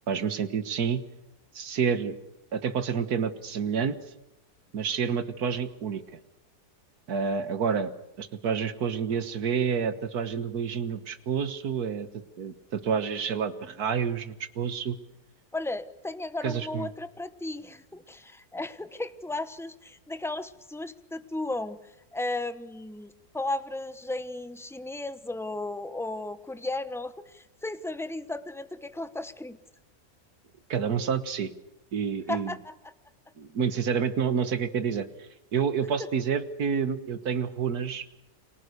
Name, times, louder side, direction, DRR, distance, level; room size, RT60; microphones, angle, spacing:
voice 1, 0.1-1.0 1.6-2.2 2.5-4.0 4.7-6.0 7.1-7.9 8.2-15.0 16.4-16.9 30.7-31.5 31.9-32.6 33.4-38.1, right 6 dB, 70° right, 11 dB, 1.9 m, -29 dB
voice 2, 15.5-21.8 22.1-29.6 32.3-32.7, left 2 dB, ahead, 12 dB, 0.6 m, -35 dB
30.0 x 24.5 x 6.7 m, 0.89 s
omnidirectional pair, 1.7 m